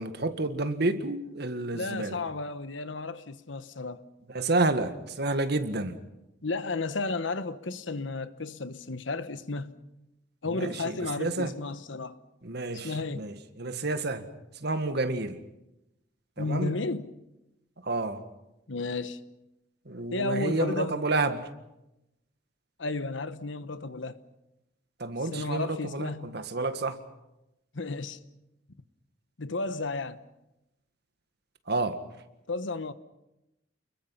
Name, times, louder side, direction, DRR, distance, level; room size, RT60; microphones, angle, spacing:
voice 1, 0.0-2.2 4.3-6.0 10.5-11.5 12.4-14.3 14.5-15.4 16.4-16.7 17.8-18.2 19.8-21.5 25.0-27.0 31.7-32.0, right 2 dB, 60° right, 1.7 m, -30 dB
voice 2, 1.7-4.0 6.4-9.7 10.4-12.2 12.8-13.3 16.4-17.1 18.7-19.2 20.1-21.0 22.8-24.2 25.3-26.4 27.7-28.2 29.4-30.2 32.5-32.9, left 3 dB, 90° left, 1.1 m, -33 dB
29.5 x 21.5 x 5.8 m
head